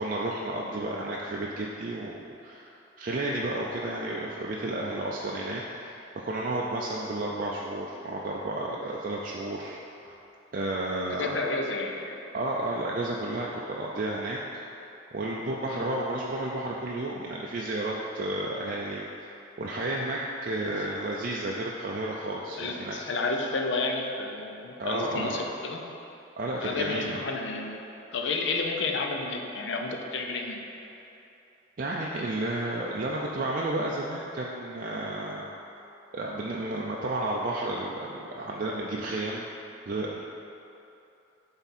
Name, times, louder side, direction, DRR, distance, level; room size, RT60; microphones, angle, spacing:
voice 1, 0.0-2.1 2.4-2.7 3.0-10.1 10.5-11.4 12.3-14.4 15.1-19.1 19.6-23.0 24.8-25.4 26.4-27.2 31.8-35.5 36.1-39.5 39.9-40.2, right 2 dB, 45° right, -3 dB, 0.4 m, -32 dB
voice 2, 11.1-12.1 15.7-15.9 20.7-20.8 22.6-25.9 26.6-27.8 28.1-30.7, left 3 dB, 65° left, 2 dB, 0.6 m, -31 dB
7.9 x 3.5 x 4.2 m, 2.9 s
head